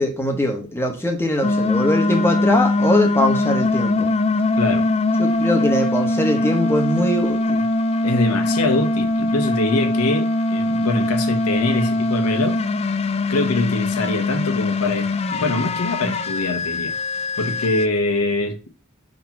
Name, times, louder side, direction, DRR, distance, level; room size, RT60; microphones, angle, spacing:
voice 1, 0.0-4.1 5.2-7.7, left 1 dB, 10° left, 1.1 m, -22 dB
sound 1, 1.4-17.9, left 2 dB, 30° left, 0.4 m, -21 dB
voice 2, 4.6-4.9 8.0-12.6 13.3-16.9 17.4-18.7, left 2 dB, 85° left, 0.9 m, -23 dB
6.5 x 3.0 x 5.7 m
head